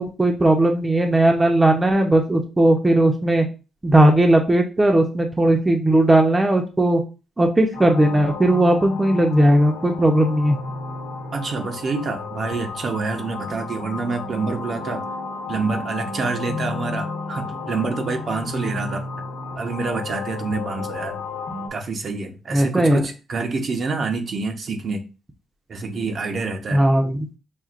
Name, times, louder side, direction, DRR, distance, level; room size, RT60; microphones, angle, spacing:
voice 1, 0.0-3.4 3.8-7.0 7.4-10.6 22.5-23.0 26.7-27.3, right 1 dB, 15° right, 0.7 m, -17 dB
sound 1, 7.7-21.7, left 3 dB, 85° left, 1.0 m, -32 dB
voice 2, 11.3-15.0 15.5-19.1 19.6-21.2 21.7-25.0 25.7-26.8, right 4 dB, 50° right, 0.7 m, -27 dB
5.8 x 2.4 x 2.4 m
cardioid pair, 90°, 0 cm